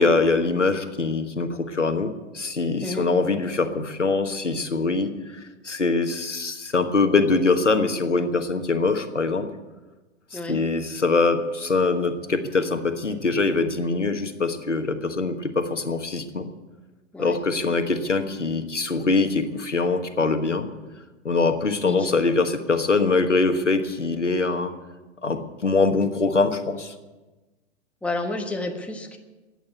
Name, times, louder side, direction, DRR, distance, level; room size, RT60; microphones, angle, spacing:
voice 1, 0.0-9.5 10.3-16.5 17.2-20.7 21.2-24.7 25.2-26.9, left 3 dB, 85° left, 8 dB, 1.4 m, -23 dB
voice 2, 21.8-22.3 28.0-29.2, left 2 dB, 5° left, 3 dB, 1.3 m, -30 dB
15.0 x 9.1 x 8.4 m, 1.2 s
figure-of-eight pair, 105°, 35 cm